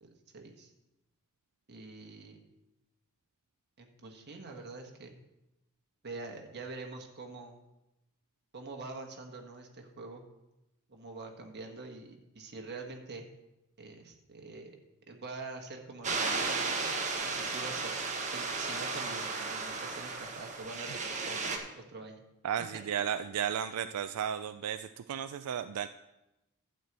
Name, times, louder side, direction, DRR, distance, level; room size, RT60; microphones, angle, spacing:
voice 1, 0.0-0.7 1.7-2.4 3.8-5.1 6.0-7.6 8.5-10.2 10.9-13.3 13.8-14.8 15.1-22.2 23.8-23.9, right 3 dB, 50° right, 3 dB, 1.5 m, -45 dB
sound 1, 16.0-21.6, right 4 dB, 35° right, 1.3 m, -34 dB
voice 2, 22.4-25.9, right 8 dB, 85° right, 10 dB, 0.4 m, -34 dB
12.0 x 4.5 x 8.0 m, 0.95 s
head